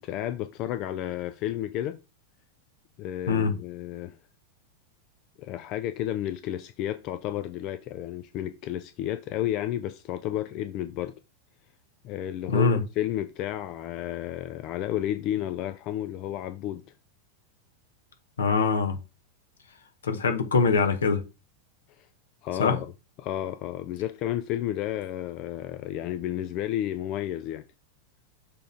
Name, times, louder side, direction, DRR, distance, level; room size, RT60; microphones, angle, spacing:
voice 1, 0.0-2.0 3.0-4.2 5.4-11.1 12.0-16.8 22.0-22.1 22.4-22.9 23.2-27.6, left 12 dB, 40° left, 0.5 m, -32 dB
voice 2, 12.5-12.8 18.4-19.0 20.0-21.2 22.6-22.8, left 4 dB, 65° left, 1.1 m, -23 dB
6.7 x 3.8 x 3.9 m
figure-of-eight pair, 90°, 0 cm